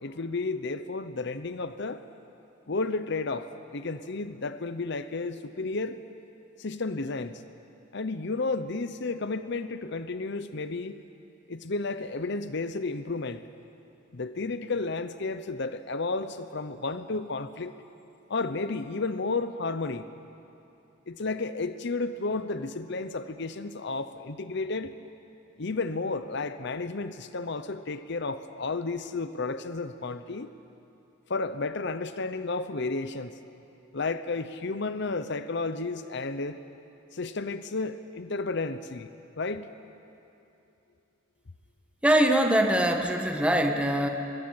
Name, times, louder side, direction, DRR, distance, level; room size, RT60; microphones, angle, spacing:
voice 1, 0.0-2.0 2.7-6.0 6.6-7.4 7.9-11.0 11.5-13.4 14.1-17.7 18.3-20.1 21.1-24.9 25.6-30.5 31.3-33.3 33.9-36.6 37.1-39.1 39.4-39.7, left 3 dB, 60° left, 11 dB, 0.8 m, -32 dB
voice 2, 42.0-44.1, right 1 dB, 5° right, 3 dB, 1.5 m, -23 dB
22.5 x 22.5 x 8.9 m, 2.8 s
head